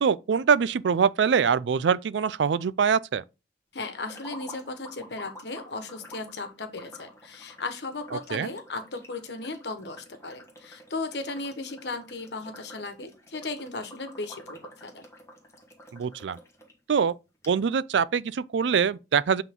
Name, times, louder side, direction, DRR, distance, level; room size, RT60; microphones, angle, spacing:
voice 1, 0.0-3.2 8.3-8.5 15.9-16.4 16.9-17.1 17.5-19.4, right 6 dB, 85° right, 0.4 m, -24 dB
voice 2, 3.7-15.1, left 3 dB, 70° left, 1.3 m, -36 dB
sound 1, 4.0-16.7 17.1-17.2 17.4-17.5, equal, 15° left, 1.4 m, -49 dB
8.2 x 3.7 x 3.7 m
head